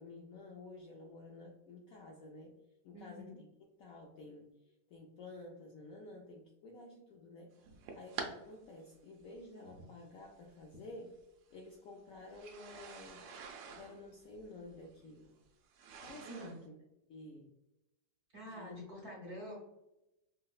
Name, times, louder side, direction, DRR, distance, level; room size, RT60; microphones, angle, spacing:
voice 1, 0.0-2.6 2.8-3.5 3.8-4.5 4.9-7.5 7.9-11.1 11.5-13.3 13.7-15.3 16.0-16.8 17.1-17.5 18.5-18.9, left 2 dB, 70° left, -1 dB, 0.8 m, -51 dB
voice 2, 2.9-3.3 16.2-16.6 18.3-19.5, equal, 50° right, -4 dB, 0.9 m, -47 dB
sound 1, 7.6-8.3 9.3-9.4 10.6-10.7 12.3-16.6, right 5 dB, 90° right, 1.3 m, -47 dB
4.6 x 2.1 x 2.3 m, 0.90 s
omnidirectional pair, 1.9 m